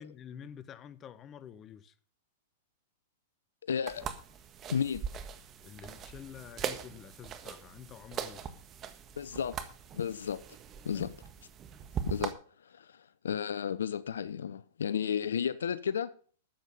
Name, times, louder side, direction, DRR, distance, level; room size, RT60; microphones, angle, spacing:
voice 1, 0.0-1.9 5.6-8.5 10.9-11.1, left 9 dB, 30° left, 1.0 m, -48 dB
voice 2, 3.6-4.1 4.7-5.0 9.2-9.6 9.9-10.4 10.8-11.1 12.0-12.3 12.6-16.1, left 7 dB, 80° left, 0.6 m, -33 dB
sound 1, 3.9-12.3, right 8 dB, 30° right, 1.5 m, -41 dB
13.0 x 8.1 x 5.5 m
hypercardioid pair, 105°, 0 cm